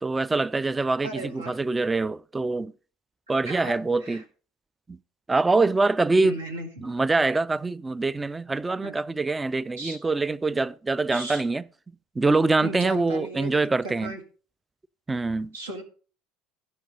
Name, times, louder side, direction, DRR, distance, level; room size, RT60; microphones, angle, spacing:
voice 1, 0.0-2.7 3.3-4.3 4.9-5.0 5.3-6.4 6.8-11.6 12.2-14.1 15.1-15.5, right 3 dB, 15° right, 0.4 m, -24 dB
voice 2, 1.0-1.6 3.5-3.8 4.0-4.2 6.2-6.9 8.8-9.0 9.8-10.0 11.1-11.4 12.6-13.6 13.8-14.2 15.5-15.8, right 2 dB, 80° right, 2.1 m, -36 dB
15.0 x 5.4 x 5.2 m
figure-of-eight pair, 65°, 0 cm